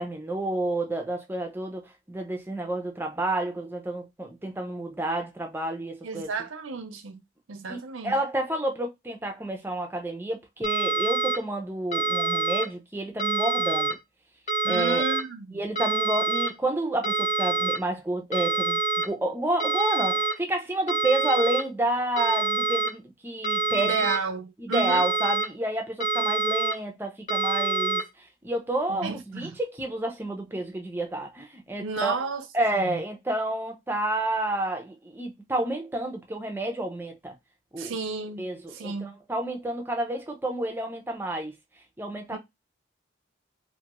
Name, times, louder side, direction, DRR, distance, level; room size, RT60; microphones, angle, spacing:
voice 1, 0.0-6.3 7.7-7.8 8.0-14.0 14.7-15.0 15.5-18.8 19.0-23.9 24.6-32.1 32.5-37.3 37.7-38.0 38.4-41.6 42.0-42.4, right 1 dB, 10° right, 0.5 m, -30 dB
voice 2, 6.0-7.2 7.5-8.2 14.6-15.6 23.8-25.1 29.0-29.6 31.8-32.5 32.7-33.0 37.8-39.1 42.3-42.4, right 4 dB, 90° right, 0.5 m, -32 dB
sound 1, 10.6-11.4 11.9-12.6 13.2-13.9 14.5-15.2 15.8-16.5 17.0-17.8 18.3-19.1 19.6-20.3 20.9-21.6 22.2-22.9 23.4-24.2 24.7-25.5 26.0-26.7 27.3-28.0, right 3 dB, 35° left, 0.7 m, -26 dB
2.5 x 2.3 x 2.9 m
head